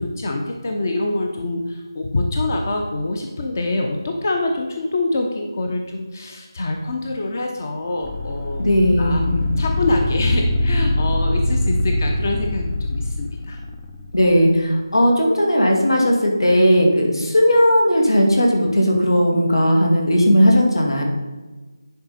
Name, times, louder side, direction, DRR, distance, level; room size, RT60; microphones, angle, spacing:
voice 1, 0.0-8.6 9.0-9.2 9.6-13.6, left 2 dB, 40° left, 2 dB, 0.8 m, -25 dB
sound 1, 8.0-14.2, left 1 dB, 15° left, 0.5 m, -23 dB
voice 2, 8.6-9.4 14.1-21.0, equal, 85° left, 0 dB, 2.3 m, -16 dB
10.5 x 5.0 x 4.2 m, 1.3 s
figure-of-eight pair, 165°, 2 cm